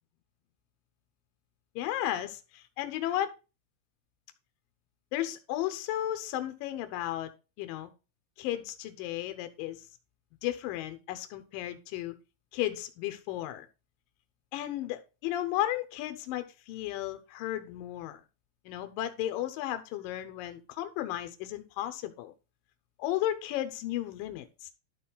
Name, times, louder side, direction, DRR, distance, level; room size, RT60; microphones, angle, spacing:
voice 1, 1.8-3.3 5.1-7.3 7.6-7.9 8.4-9.8 10.4-12.2 12.5-13.7 14.5-18.2 18.7-22.3 23.0-24.7, left 13 dB, 75° left, 9 dB, 2.2 m, -34 dB
11.5 x 4.1 x 4.0 m, 0.30 s
omnidirectional pair, 4.8 m